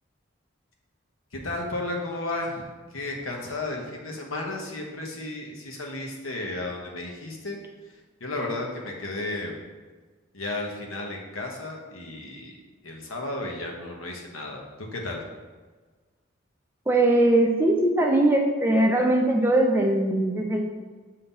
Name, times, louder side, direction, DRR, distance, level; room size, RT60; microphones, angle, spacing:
voice 1, 1.3-2.6 2.9-7.6 8.2-9.5 10.3-12.6 12.8-15.2, left 2 dB, 80° left, 1 dB, 1.1 m, -33 dB
voice 2, 16.9-20.6, right 1 dB, 10° right, 1 dB, 0.5 m, -21 dB
6.9 x 2.8 x 5.5 m, 1.4 s
head